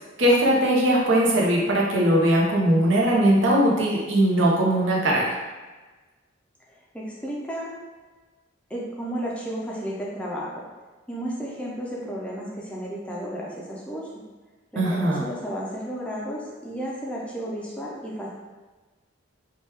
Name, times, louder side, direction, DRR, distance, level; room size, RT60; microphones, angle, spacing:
voice 1, 0.2-5.4 14.8-15.2, right 1 dB, 75° right, -3 dB, 0.7 m, -20 dB
voice 2, 6.7-7.7 8.7-10.6 11.1-14.1 14.7-18.3, equal, 5° left, -4 dB, 0.4 m, -33 dB
2.9 x 2.2 x 3.2 m, 1.3 s
head